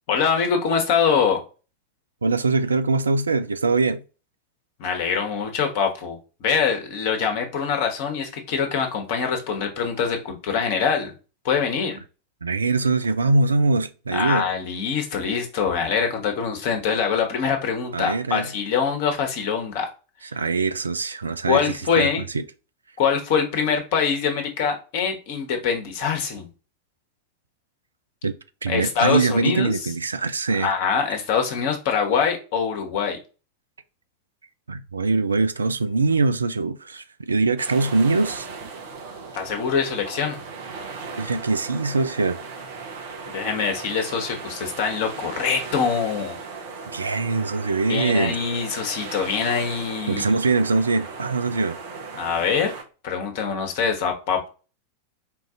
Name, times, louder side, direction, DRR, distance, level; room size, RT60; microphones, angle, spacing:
voice 1, 0.1-1.4 4.8-11.1 11.4-12.0 14.1-19.9 21.5-22.2 23.0-26.5 28.7-29.9 30.5-33.2 39.3-40.4 43.3-46.4 47.9-50.2 52.1-52.7 53.0-54.5, left 6 dB, 50° left, 1.2 m, -24 dB
voice 2, 2.2-4.0 12.4-14.4 17.9-18.5 20.3-22.1 22.3-22.4 28.2-28.4 28.6-30.7 34.7-38.5 41.2-42.4 46.9-48.4 50.1-51.8, right 3 dB, 75° right, 0.3 m, -22 dB
sound 1, 37.6-52.8, right 4 dB, 50° right, 0.9 m, -37 dB
4.6 x 2.6 x 3.7 m
figure-of-eight pair, 90°, 0 cm